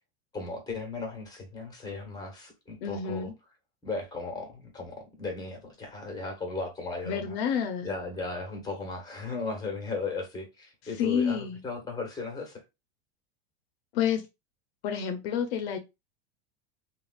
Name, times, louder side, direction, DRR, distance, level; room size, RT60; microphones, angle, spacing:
voice 1, 0.3-3.3 3.8-7.3 7.8-12.6, left 3 dB, 10° left, 1.3 m, -36 dB
voice 2, 2.8-3.3 7.0-7.9 10.9-11.6 13.9-14.3 14.8-15.8, left 7 dB, 65° left, 0.6 m, -29 dB
3.1 x 2.4 x 2.4 m
supercardioid pair, 120°, 32 cm